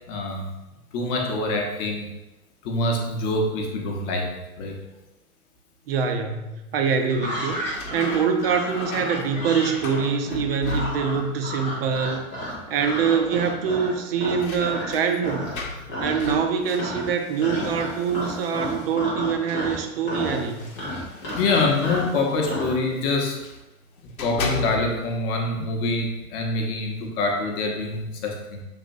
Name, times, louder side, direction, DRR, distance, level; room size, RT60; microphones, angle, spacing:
voice 1, 0.1-0.5 0.9-2.1 2.6-4.8 21.3-23.4 24.2-28.6, left 2 dB, 30° left, 0 dB, 0.8 m, -25 dB
voice 2, 5.9-7.6 7.9-15.5 16.0-20.7, right 6 dB, 40° right, 5 dB, 0.6 m, -24 dB
sound 1, 7.0-11.4 11.7-12.4 12.7-12.8 13.8-19.3 20.1-23.6 24.0-25.2, left 3 dB, 70° left, 0.8 m, -37 dB
sound 2, 7.1-14.9 15.2-15.6 15.9-16.5 16.8-22.7, left 1 dB, 10° left, 0.3 m, -32 dB
6.8 x 2.9 x 2.6 m, 1.0 s
figure-of-eight pair, 105°, 44 cm